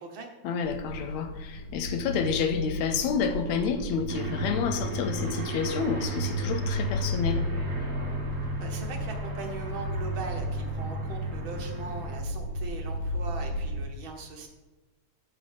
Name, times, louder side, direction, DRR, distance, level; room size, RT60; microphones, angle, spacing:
voice 1, 0.4-7.5, left 6 dB, 75° left, 8 dB, 1.7 m, -29 dB
sound 1, 0.6-13.8, equal, 30° left, 1.1 m, -35 dB
Aircraft, 4.1-12.2, right 1 dB, 35° right, 1.8 m, -33 dB
voice 2, 8.6-14.5, right 4 dB, 70° right, 2 dB, 1.2 m, -40 dB
10.0 x 3.8 x 7.0 m, 1.2 s
omnidirectional pair, 3.6 m